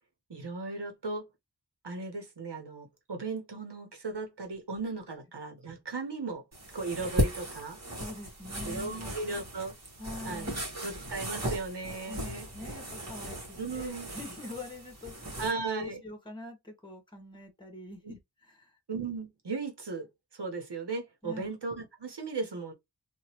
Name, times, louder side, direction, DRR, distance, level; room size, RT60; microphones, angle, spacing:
voice 1, 0.3-1.2 1.8-6.4 6.7-7.8 8.6-9.7 10.2-12.5 13.6-14.1 15.4-16.0 18.0-18.2 18.9-20.1 20.4-22.7, right 3 dB, 75° right, 1.2 m, -36 dB
sound 1, 6.5-15.5, equal, 40° right, 1.5 m, -36 dB
voice 2, 7.9-9.1 10.0-10.7 12.1-15.4 15.7-18.8 21.2-21.5, left 2 dB, 10° left, 1.4 m, -44 dB
3.0 x 2.6 x 2.9 m
wide cardioid pair, 65°, 41 cm